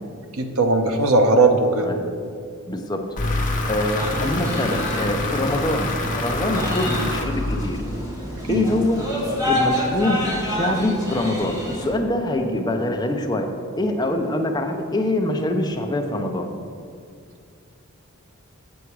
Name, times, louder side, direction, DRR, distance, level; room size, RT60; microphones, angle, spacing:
voice 1, 0.3-1.9 8.5-8.6, right 3 dB, 75° right, 5 dB, 0.8 m, -18 dB
voice 2, 2.7-3.0 3.7-7.8 8.5-9.0 9.5-13.5 13.8-16.5, left 1 dB, 20° left, 3 dB, 0.6 m, -24 dB
sound 1, 3.2-8.1, left 2 dB, 35° left, 0.9 m, -26 dB
sound 2, 4.0-11.8, left 1 dB, 20° right, 1.5 m, -28 dB
7.3 x 6.8 x 4.7 m, 2.2 s
head